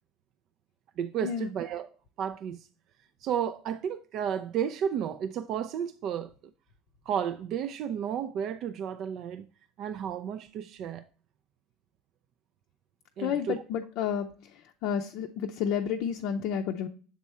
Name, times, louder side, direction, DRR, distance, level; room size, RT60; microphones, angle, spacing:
voice 1, 1.0-1.9 2.2-2.7 3.2-6.3 7.1-9.4 9.8-11.0 13.2-13.6, right 8 dB, 55° right, 0.3 m, -32 dB
voice 2, 13.2-14.3 14.8-16.9, left 8 dB, 65° left, 0.5 m, -30 dB
7.3 x 3.5 x 4.2 m
hypercardioid pair, 85°, 0 cm